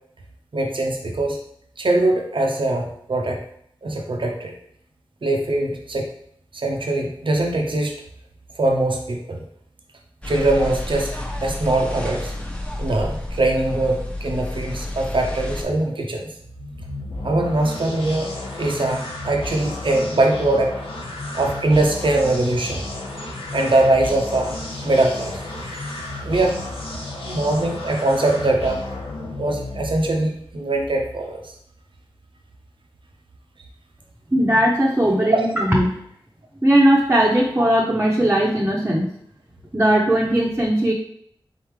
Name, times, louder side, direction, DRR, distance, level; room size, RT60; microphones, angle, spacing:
voice 1, 0.5-1.4 1.8-3.4 3.8-4.5 5.2-6.1 6.5-7.9 8.5-9.4 10.2-11.1 11.4-12.3 12.8-16.2 17.2-18.3 18.6-20.8 21.3-22.8 23.5-26.6 27.2-28.8 29.4-31.5 35.2-35.5, right 2 dB, 60° right, 2 dB, 0.6 m, -22 dB
sound 1, 10.2-15.6, left 1 dB, 10° left, 0.8 m, -30 dB
sound 2, 16.4-30.2, left 2 dB, 80° left, 1.0 m, -33 dB
voice 2, 34.3-35.9 36.6-39.1 39.7-40.9, right 1 dB, 20° right, -4 dB, 0.8 m, -18 dB
4.1 x 3.6 x 3.2 m, 0.68 s
wide cardioid pair, 50°, 10 cm